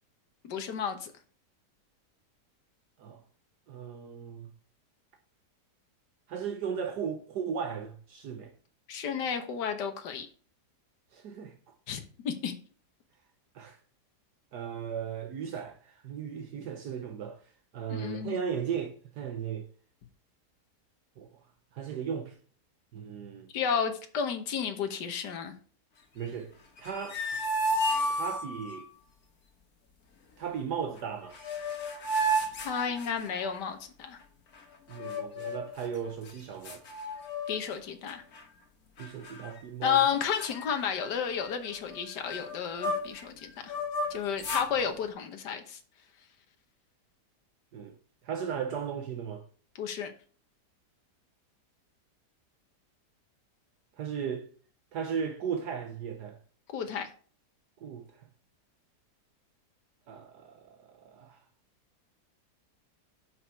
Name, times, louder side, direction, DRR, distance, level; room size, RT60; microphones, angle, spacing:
voice 1, 0.4-1.1 8.9-10.3 11.9-12.5 17.9-18.4 23.5-25.5 32.6-34.2 37.5-38.2 39.8-43.7 44.1-45.8 49.8-50.1 56.7-57.1, left 7 dB, 80° left, 1.7 m, -32 dB
voice 2, 3.7-4.5 6.3-8.5 11.1-11.5 13.5-13.8 14.5-17.4 17.7-19.6 21.2-21.3 21.7-22.3 22.9-23.5 26.1-26.5 26.8-27.2 28.1-28.9 30.4-31.4 34.9-36.8 39.0-40.0 47.7-47.9 48.2-49.4 54.0-54.5 54.9-56.4 57.8-58.0 60.1-61.4, right 7 dB, 70° right, 1.5 m, -36 dB
sound 1, 26.8-28.8 31.0-31.1 31.3-33.6 34.9-35.7 36.3-36.4 36.7-37.8 38.1-38.4 39.0-39.6 39.9-40.1 40.4-43.2 43.6-44.7, equal, 60° left, 2.0 m, -33 dB
8.5 x 6.1 x 4.6 m
omnidirectional pair, 1.8 m